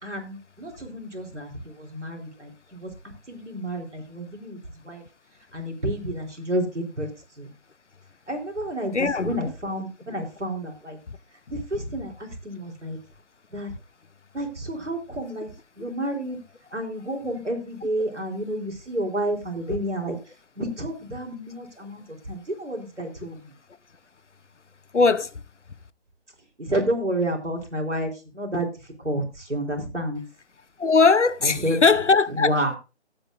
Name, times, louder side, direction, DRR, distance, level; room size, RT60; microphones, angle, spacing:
voice 1, 0.0-2.9 3.3-5.0 5.5-7.1 7.4-7.5 8.3-11.0 11.5-13.0 13.5-13.7 14.3-15.5 15.8-16.4 16.7-20.2 20.6-23.5 26.6-28.7 29.0-30.2 31.4-31.8 32.3-32.8, right 1 dB, 85° right, 3.8 m, -30 dB
voice 2, 8.9-9.4 24.9-25.3 30.8-32.5, left 4 dB, 85° left, 0.9 m, -19 dB
17.5 x 8.2 x 2.6 m
figure-of-eight pair, 155°, 35 cm